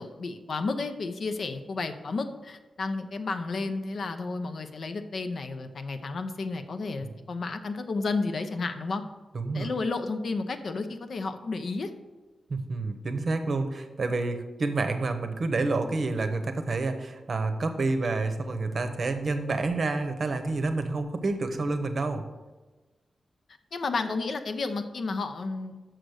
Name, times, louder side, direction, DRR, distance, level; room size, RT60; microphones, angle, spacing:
voice 1, 0.0-9.0 9.5-11.9 23.7-25.8, left 3 dB, 55° left, 8 dB, 0.7 m, -32 dB
voice 2, 9.3-9.7 12.5-22.2, right 3 dB, 45° right, 8 dB, 0.8 m, -29 dB
6.6 x 6.2 x 6.3 m, 1.2 s
wide cardioid pair, 160°, 0 cm